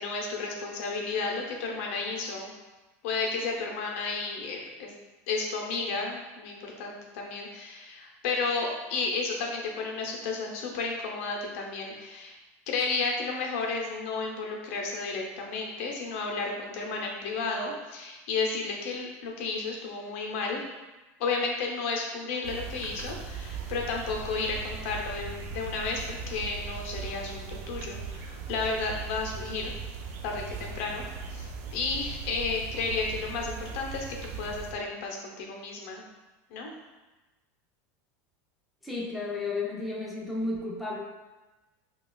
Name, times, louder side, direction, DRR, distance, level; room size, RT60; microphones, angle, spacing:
voice 1, 0.0-2.5 3.0-4.9 5.3-12.3 12.7-20.6 21.2-29.7 30.2-34.1 34.4-36.0 36.5-36.7, left 4 dB, 65° left, 0 dB, 0.7 m, -32 dB
sound 1, 22.4-34.7, right 5 dB, 70° right, 0.4 m, -39 dB
voice 2, 38.8-41.0, left 3 dB, ahead, -5 dB, 0.4 m, -32 dB
5.2 x 2.3 x 2.3 m, 1.1 s
supercardioid pair, 170°, 8 cm